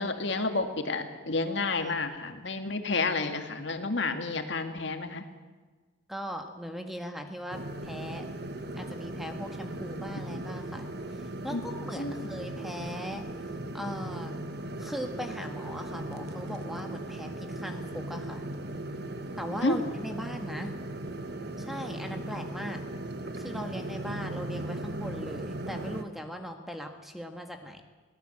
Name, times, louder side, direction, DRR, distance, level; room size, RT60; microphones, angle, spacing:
voice 1, 0.0-5.3 11.5-12.1 19.6-19.8, left 3 dB, 65° left, 6 dB, 2.0 m, -30 dB
voice 2, 6.1-8.2 8.8-13.3 13.7-14.3 14.8-18.4 19.4-20.7 21.6-22.8 23.3-27.8, equal, ahead, 4 dB, 1.7 m, -39 dB
sound 1, 7.5-26.0, right 1 dB, 55° right, 1.5 m, -38 dB
23.0 x 17.5 x 7.8 m, 1.3 s
head